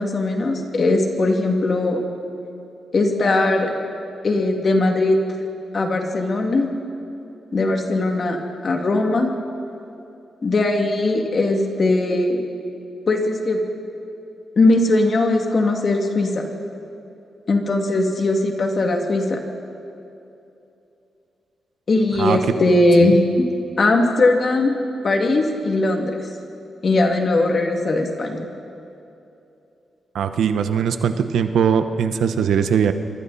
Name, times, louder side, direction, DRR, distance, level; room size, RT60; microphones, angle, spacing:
voice 1, 0.0-2.0 2.9-3.7 4.2-5.2 5.7-6.7 7.5-8.4 8.6-9.3 10.4-12.4 13.1-13.6 14.6-16.4 17.5-19.4 21.9-23.5 23.8-24.8 25.0-26.2 26.8-28.4, left 2 dB, 40° left, 2 dB, 2.5 m, -19 dB
voice 2, 30.1-32.9, right 7 dB, 90° right, 9 dB, 1.0 m, -20 dB
27.0 x 24.0 x 4.3 m, 2.7 s
wide cardioid pair, 140°, 0 cm